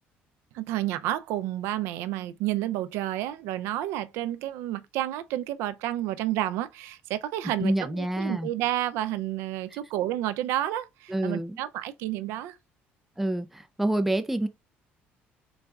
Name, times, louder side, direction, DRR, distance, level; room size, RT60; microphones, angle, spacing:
voice 1, 0.5-12.6, right 13 dB, 90° right, 0.4 m, -30 dB
voice 2, 7.6-8.5 9.7-9.8 11.1-11.6 13.2-14.5, right 1 dB, 5° right, 0.4 m, -27 dB
4.0 x 2.3 x 3.4 m
cardioid pair, 110°, 4 cm